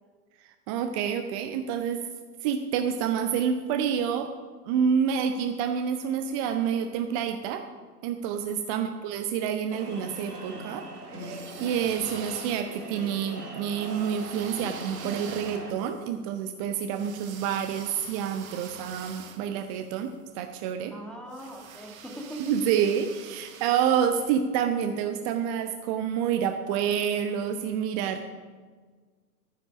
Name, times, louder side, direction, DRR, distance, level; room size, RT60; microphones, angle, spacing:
voice 1, 0.7-2.0 2.4-4.3 4.7-7.6 8.0-10.9 11.2-20.1 20.4-20.9 22.4-28.2, right 8 dB, 20° right, 8 dB, 0.5 m, -28 dB
voice 2, 8.7-9.1 20.9-22.6, right 1 dB, ahead, 0 dB, 1.9 m, -41 dB
sound 1, 9.7-15.7, right 2 dB, 80° right, 1.9 m, -40 dB
sound 2, 11.1-13.0 13.8-20.1 21.3-24.3, right 7 dB, 60° right, 1.3 m, -46 dB
12.5 x 9.7 x 6.1 m, 1.5 s
figure-of-eight pair, 100°, 46 cm